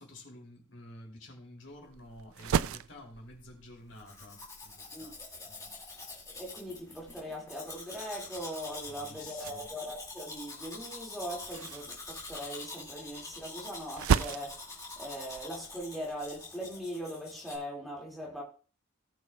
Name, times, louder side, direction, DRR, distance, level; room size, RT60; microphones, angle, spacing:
voice 1, 0.0-5.2 5.4-5.8 8.9-9.7, left 1 dB, 60° left, 2.9 m, -51 dB
sound 1, 1.7-16.4, right 7 dB, 90° right, 0.4 m, -38 dB
Domestic sounds home sounds, 3.9-17.6, left 3 dB, 15° left, 2.2 m, -46 dB
voice 2, 6.4-18.4, equal, ahead, 2.1 m, -40 dB
18.0 x 6.3 x 2.3 m
head